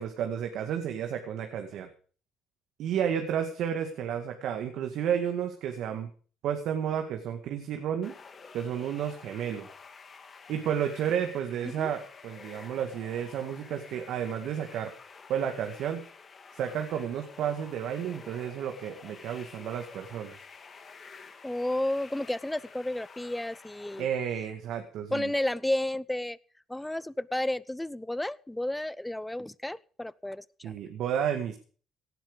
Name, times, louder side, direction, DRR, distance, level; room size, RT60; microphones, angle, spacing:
voice 1, 0.0-1.9 2.8-6.1 6.4-8.2 8.5-9.7 10.5-14.9 15.3-16.0 16.5-20.4 24.0-25.3 30.6-31.6, right 8 dB, 70° right, 5 dB, 2.1 m, -32 dB
sound 1, 8.0-24.0, left 5 dB, 40° left, 2.7 m, -50 dB
voice 2, 21.4-24.1 25.1-26.4 26.7-30.4, left 1 dB, 10° left, 21 dB, 0.7 m, -32 dB
17.5 x 10.5 x 5.2 m, 0.42 s
supercardioid pair, 70°, 0 cm